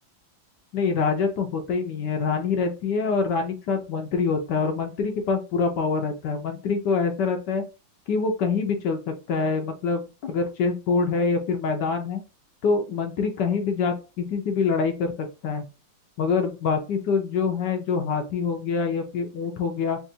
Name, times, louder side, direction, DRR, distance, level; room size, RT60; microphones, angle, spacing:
voice 1, 0.7-7.7 8.1-12.2 12.6-15.6 16.2-20.0, left 5 dB, 70° left, 5 dB, 1.3 m, -25 dB
3.5 x 2.5 x 4.1 m, 0.31 s
omnidirectional pair, 2.1 m